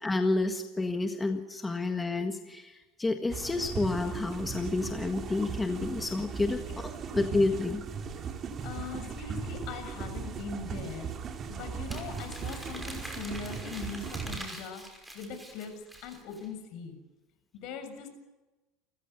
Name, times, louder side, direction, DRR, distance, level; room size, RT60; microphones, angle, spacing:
voice 1, 0.0-7.8, left 2 dB, 10° left, 5 dB, 1.6 m, -30 dB
sound 1, 3.3-14.4, right 6 dB, 35° right, 2.7 m, -38 dB
voice 2, 8.6-11.1 11.5-15.7 16.0-17.0 17.5-18.1, left 5 dB, 60° left, 7 dB, 6.9 m, -41 dB
Crumpling crinkling, 11.9-16.5, right 1 dB, 5° right, 5.6 m, -45 dB
29.0 x 15.0 x 8.2 m, 1.1 s
supercardioid pair, 130°, 0 cm